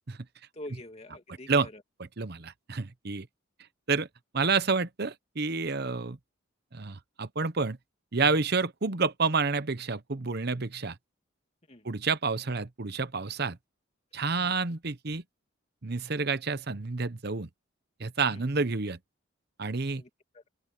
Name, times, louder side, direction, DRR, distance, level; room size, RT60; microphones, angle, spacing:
voice 1, 0.5-1.8 11.7-11.9 14.4-14.6 18.3-18.5 19.9-20.5, left 1 dB, 30° left, 2.6 m, -46 dB
voice 2, 2.2-3.3 3.9-4.1 4.3-6.2 6.7-7.8 8.1-10.9 11.8-13.6 14.1-15.2 15.8-17.5 18.0-19.0 19.6-20.0, right 4 dB, 50° right, 0.9 m, -29 dB
open air
head